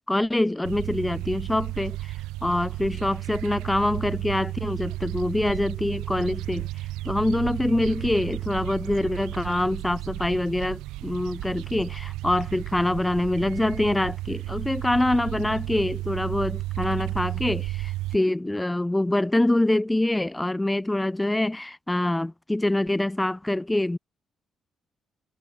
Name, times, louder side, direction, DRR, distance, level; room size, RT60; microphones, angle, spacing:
voice 1, 0.1-2.0 2.4-6.7 7.0-24.0, left 1 dB, 10° left, 6.0 m, -25 dB
sound 1, 0.6-18.2, right 18 dB, 90° right, 4.2 m, -33 dB
supercardioid pair, 60°, 0 cm